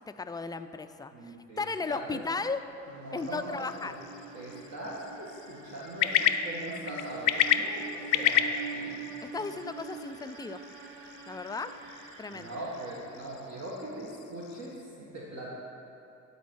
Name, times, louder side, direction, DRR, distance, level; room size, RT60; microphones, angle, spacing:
voice 1, 0.1-2.6 3.1-3.9 9.2-10.6 11.3-11.7 12.2-12.6, left 4 dB, 15° left, 10 dB, 0.3 m, -35 dB
voice 2, 1.1-2.2 2.9-3.9 4.3-9.0 9.4-9.5 12.3-15.5, right 1 dB, 60° right, -6 dB, 1.6 m, -41 dB
sound 1, 2.2-14.0, right 6 dB, 85° right, 0.9 m, -46 dB
sound 2, 3.2-14.8, left 10 dB, 85° left, 0.5 m, -33 dB
10.0 x 4.2 x 6.3 m, 2.6 s
cardioid pair, 90°, 30 cm